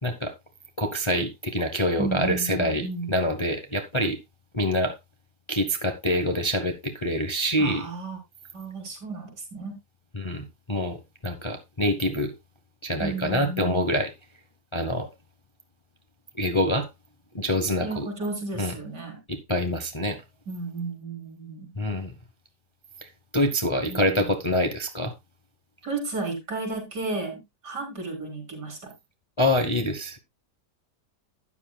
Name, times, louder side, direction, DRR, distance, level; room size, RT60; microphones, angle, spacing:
voice 1, 0.0-0.3 0.8-4.2 4.5-4.9 5.5-7.9 10.1-11.0 11.2-12.3 12.8-14.1 14.7-15.1 16.4-16.9 17.3-18.1 18.6-18.7 19.3-20.2 21.8-22.1 23.0-23.1 23.3-25.1 29.4-30.2, left 1 dB, 20° left, 0.9 m, -26 dB
voice 2, 2.0-3.2 7.6-8.2 8.5-9.7 13.0-13.9 17.8-19.2 20.5-21.7 23.8-24.3 25.8-28.9, right 3 dB, 70° right, 4.5 m, -33 dB
13.0 x 9.7 x 2.3 m
omnidirectional pair, 1.8 m